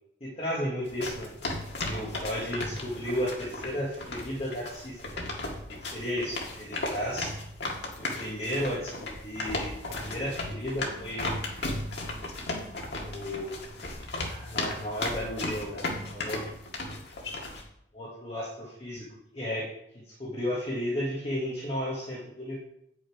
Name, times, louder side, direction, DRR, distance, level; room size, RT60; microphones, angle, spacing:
voice 1, 0.2-1.3 1.8-5.0 5.8-7.3 8.0-11.4 13.0-13.6 14.2-16.4 17.9-19.0 19.3-19.7 20.2-22.6, equal, 30° left, -6 dB, 1.7 m, -33 dB
sound 1, 0.9-17.6, left 2 dB, 65° left, 1.8 m, -36 dB
8.5 x 6.4 x 5.0 m, 0.76 s
head